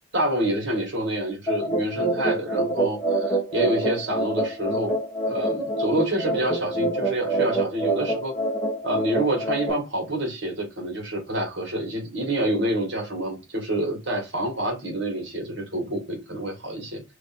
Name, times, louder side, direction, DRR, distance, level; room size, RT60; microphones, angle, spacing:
voice 1, 0.1-4.9 5.3-8.3 8.8-17.0, right 1 dB, 55° right, 1.7 m, -27 dB
sound 1, 1.5-9.7, right 2 dB, 5° left, 1.4 m, -26 dB
3.2 x 3.0 x 4.3 m
head